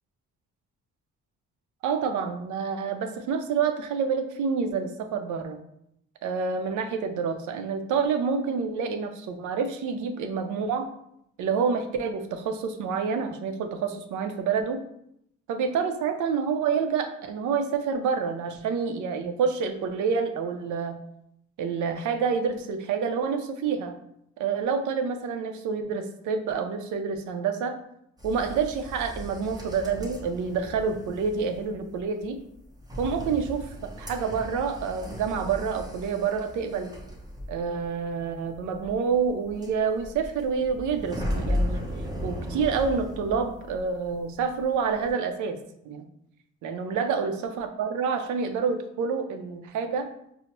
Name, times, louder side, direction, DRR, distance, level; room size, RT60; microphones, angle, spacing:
voice 1, 1.8-5.6 6.2-10.9 11.4-14.8 15.5-21.0 21.6-24.0 24.4-27.8 28.2-32.4 33.0-36.9 37.5-41.8 42.2-45.6 45.8-46.1 46.6-50.1, right 5 dB, 80° right, 7 dB, 0.5 m, -28 dB
sound 1, 28.2-44.1 44.4-45.1, left 1 dB, 15° right, 0.8 m, -36 dB
4.4 x 2.0 x 2.9 m, 0.76 s
cardioid pair, 90°, 30 cm